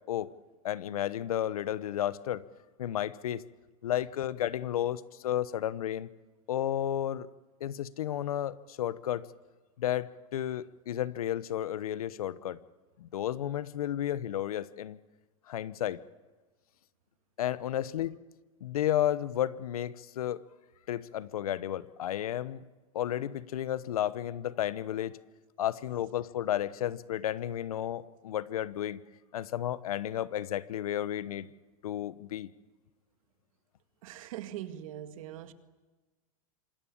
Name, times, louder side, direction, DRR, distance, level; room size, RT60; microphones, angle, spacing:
voice 1, 0.6-2.4 2.8-3.4 3.8-6.1 6.5-7.3 7.6-9.2 9.8-12.6 13.0-15.0 15.5-16.0 17.4-18.2 18.6-20.4 20.9-22.6 22.9-25.2 25.6-29.0 29.3-31.5 31.8-32.5, left 11 dB, 85° left, 1.0 m, -32 dB
voice 2, 34.0-35.5, right 12 dB, 70° right, 2.1 m, -41 dB
26.5 x 20.5 x 8.7 m
hypercardioid pair, 125°, 18 cm